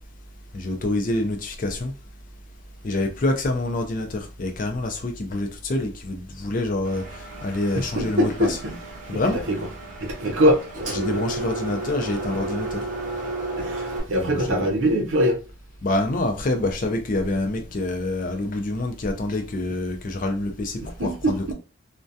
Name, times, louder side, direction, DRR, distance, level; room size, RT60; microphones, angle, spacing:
voice 1, 0.5-1.9 2.8-8.6 9.1-9.4 10.9-12.8 14.1-14.7 15.8-21.5, left 2 dB, 40° left, 0.4 m, -26 dB
Engine, 6.8-14.0, right 2 dB, 40° right, 0.6 m, -33 dB
voice 2, 8.0-8.8 9.1-9.6 10.0-10.6 13.6-15.4 20.8-21.5, equal, 80° right, 0.6 m, -23 dB
2.3 x 2.2 x 2.6 m
head